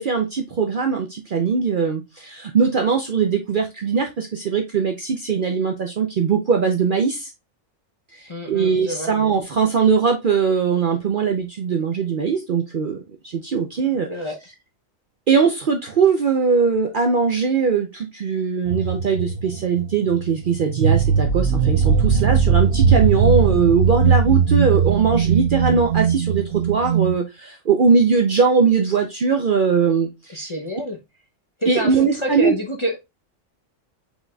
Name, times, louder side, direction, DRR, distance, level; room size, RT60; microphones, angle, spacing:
voice 1, 0.0-7.3 8.1-14.1 15.3-30.5 31.7-32.6, right 5 dB, 55° right, 3 dB, 0.6 m, -20 dB
voice 2, 8.3-9.1 14.1-14.4 30.3-31.0 31.6-33.0, equal, 30° left, 0 dB, 0.6 m, -27 dB
sound 1, 18.7-27.2, right 6 dB, 90° right, 1.0 m, -19 dB
5.1 x 4.0 x 2.3 m, 0.22 s
omnidirectional pair, 1.4 m